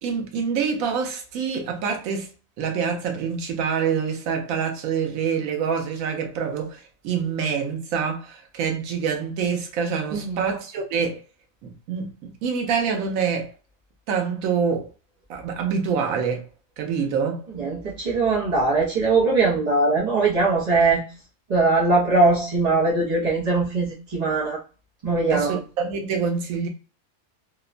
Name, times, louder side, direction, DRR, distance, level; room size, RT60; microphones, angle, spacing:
voice 1, 0.0-2.3 2.6-11.2 11.6-13.5 14.1-14.9 15.3-16.4 16.8-17.4 25.3-26.7, right 6 dB, 90° right, 1.0 m, -26 dB
voice 2, 10.1-10.4 17.6-21.0 21.5-24.6 25.0-25.6, right 3 dB, 45° right, 0.6 m, -21 dB
2.8 x 2.0 x 2.4 m
omnidirectional pair, 1.4 m